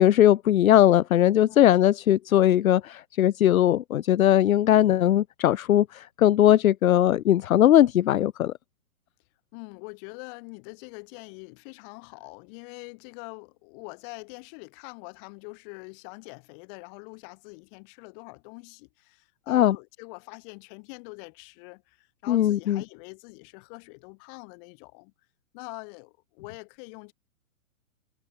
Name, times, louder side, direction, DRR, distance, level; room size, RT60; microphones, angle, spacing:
voice 1, 0.0-8.5 19.5-19.8 22.3-22.8, left 12 dB, 70° left, 0.9 m, -20 dB
voice 2, 1.4-1.7 9.5-25.1 25.5-27.1, left 37 dB, 35° left, 7.6 m, -44 dB
hypercardioid pair, 140°, 44 cm